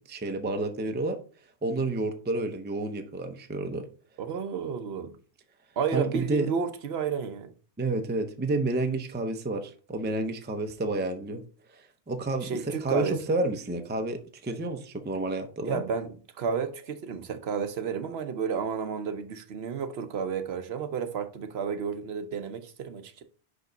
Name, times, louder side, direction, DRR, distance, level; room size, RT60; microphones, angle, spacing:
voice 1, 0.1-1.2 1.6-3.8 5.9-6.5 7.8-11.4 11.7-15.8, right 2 dB, 15° right, 0.4 m, -30 dB
voice 2, 4.2-5.1 5.8-7.5 12.4-13.2 15.6-16.1 16.4-23.2, right 6 dB, 65° right, 0.9 m, -31 dB
5.4 x 5.2 x 3.9 m
omnidirectional pair, 1.2 m